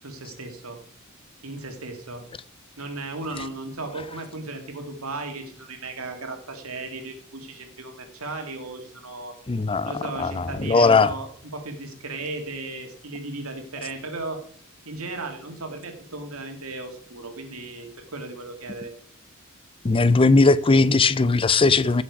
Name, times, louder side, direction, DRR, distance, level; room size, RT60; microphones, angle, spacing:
voice 1, 0.0-0.8 1.4-2.2 2.8-9.3 9.8-14.4 14.9-18.9, right 2 dB, 85° right, 2.1 m, -36 dB
voice 2, 9.5-9.9 10.2-11.1 19.8-22.0, left 3 dB, 25° left, 0.5 m, -18 dB
15.5 x 6.2 x 4.7 m
head